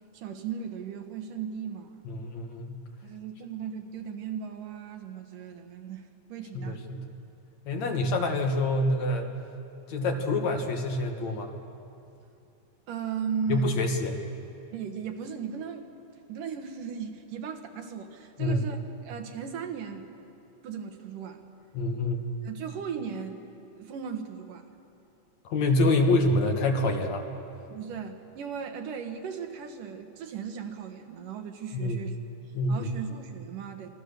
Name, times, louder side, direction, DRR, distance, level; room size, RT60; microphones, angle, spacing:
voice 1, 0.1-2.1 3.0-6.8 12.9-13.7 14.7-15.9 16.3-18.8 19.0-20.1 20.6-21.4 22.4-23.4 23.8-24.6 27.7-32.2 32.7-33.9, right 7 dB, 75° right, 5 dB, 3.1 m, -37 dB
voice 2, 2.0-2.8 6.5-7.1 7.7-9.3 9.9-11.5 13.5-14.2 18.4-18.6 21.7-22.2 25.4-27.2 31.7-32.0 32.5-32.9, left 2 dB, 60° left, 3 dB, 2.8 m, -26 dB
26.5 x 22.5 x 6.7 m, 2.7 s
omnidirectional pair, 3.8 m